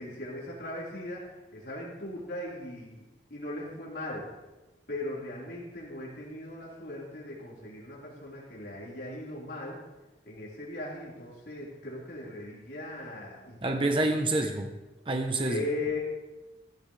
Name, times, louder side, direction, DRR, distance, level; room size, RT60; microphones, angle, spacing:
voice 1, 0.0-3.0 3.3-4.3 4.9-9.8 10.2-14.0 15.4-16.0, left 1 dB, 65° left, -6 dB, 4.6 m, -38 dB
voice 2, 13.6-14.7 15.1-15.6, right 2 dB, 30° right, 3 dB, 1.0 m, -27 dB
16.5 x 15.0 x 3.4 m, 1.1 s
head